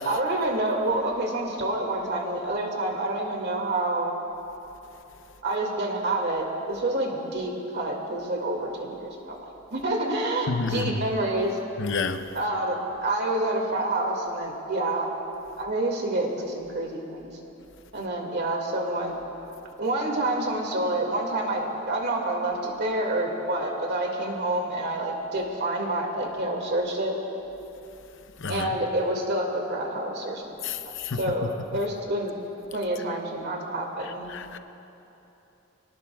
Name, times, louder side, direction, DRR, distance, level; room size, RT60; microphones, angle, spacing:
voice 1, 0.1-4.2 5.4-11.6 12.3-15.1 15.6-17.3 17.9-19.2 19.8-27.1 28.5-32.3 32.7-34.3, right 1 dB, 55° right, 0 dB, 2.2 m, -28 dB
voice 2, 10.5-11.1 11.8-12.2 28.4-28.7 30.6-31.2 34.3-34.6, left 4 dB, 60° left, 9 dB, 0.8 m, -29 dB
26.5 x 18.5 x 2.4 m, 3.0 s
head